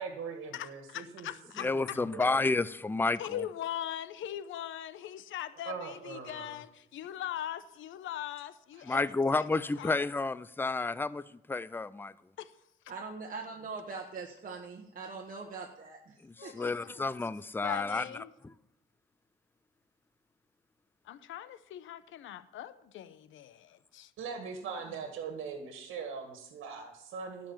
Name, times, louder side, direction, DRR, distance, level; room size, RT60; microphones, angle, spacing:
voice 1, 0.0-1.3 1.6-2.4 5.6-6.6 24.2-27.5, right 5 dB, 80° right, 1.7 m, -41 dB
voice 2, 0.5-2.0 3.2-9.0 9.3-10.1 12.4-12.5 16.4-17.0 17.6-18.3 21.0-24.1 24.9-25.0, left 11 dB, 80° left, 0.8 m, -41 dB
voice 3, 1.6-3.2 8.9-11.2 11.5-12.1 16.2-18.0 18.4-18.5, left 3 dB, 10° left, 0.4 m, -30 dB
voice 4, 12.9-16.7, right 4 dB, 45° right, 1.4 m, -42 dB
12.5 x 5.2 x 8.8 m
cardioid pair, 90°, 20 cm